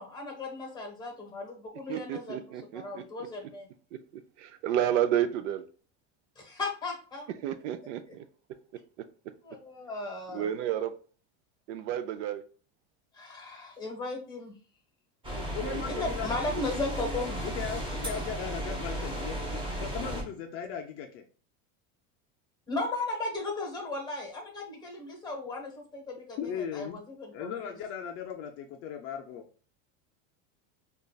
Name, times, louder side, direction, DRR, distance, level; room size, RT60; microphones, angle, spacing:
voice 1, 0.0-2.4 2.7-3.7 6.4-7.3 8.1-8.2 9.4-10.5 13.1-14.5 16.0-17.4 22.7-27.7, left 2 dB, 10° left, 0.9 m, -36 dB
voice 2, 1.9-3.0 3.9-4.0 4.4-5.6 7.4-8.2 10.3-11.0 11.7-12.4 15.6-16.0, right 10 dB, 75° right, 0.5 m, -31 dB
sound 1, 15.2-20.2, right 1 dB, 15° right, 0.7 m, -34 dB
voice 3, 15.4-16.7 17.4-21.2 26.4-27.0 27.3-29.4, left 8 dB, 40° left, 0.4 m, -38 dB
5.0 x 2.3 x 2.3 m
supercardioid pair, 155°, 36 cm